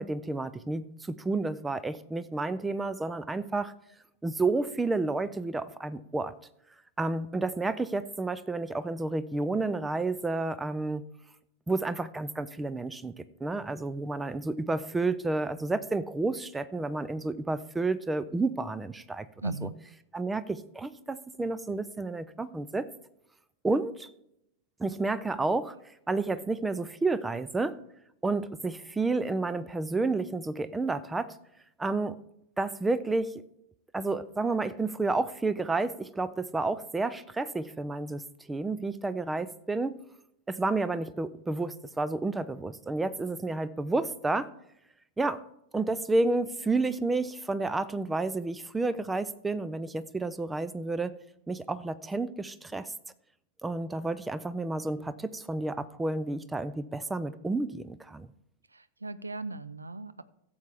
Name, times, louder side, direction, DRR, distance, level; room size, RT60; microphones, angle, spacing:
voice 1, 0.0-3.7 4.2-6.3 7.0-11.0 11.7-13.1 13.4-19.3 20.1-22.9 23.6-24.1 24.8-25.8 26.1-27.8 28.2-31.4 31.8-32.2 32.6-33.4 33.9-38.2 38.5-40.0 40.5-44.5 45.2-45.4 45.7-51.1 51.5-52.9 53.6-58.3, right 3 dB, 10° right, 15 dB, 0.4 m, -30 dB
voice 2, 19.4-19.8 58.7-60.2, right 2 dB, 80° right, 16 dB, 0.4 m, -37 dB
16.0 x 7.0 x 3.5 m, 0.81 s
figure-of-eight pair, 90°, 0 cm